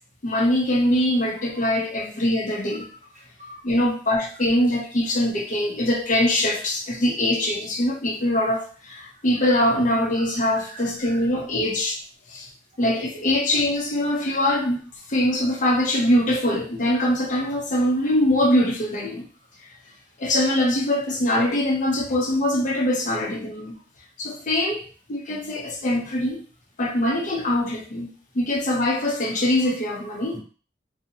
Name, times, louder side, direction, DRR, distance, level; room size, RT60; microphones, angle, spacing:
voice 1, 0.2-2.9 3.6-12.0 12.3-12.5 12.8-19.2 20.2-23.7 24.2-24.8 25.1-26.4 26.8-30.4, left 1 dB, 45° left, 0.6 m, -23 dB
voice 2, 3.1-3.7 4.4-4.5 9.3-9.6 10.1-11.3 12.8-12.9 22.6-22.7 23.5-23.6 30.2-30.4, right 1 dB, 45° right, 0.8 m, -44 dB
2.6 x 2.0 x 2.7 m
head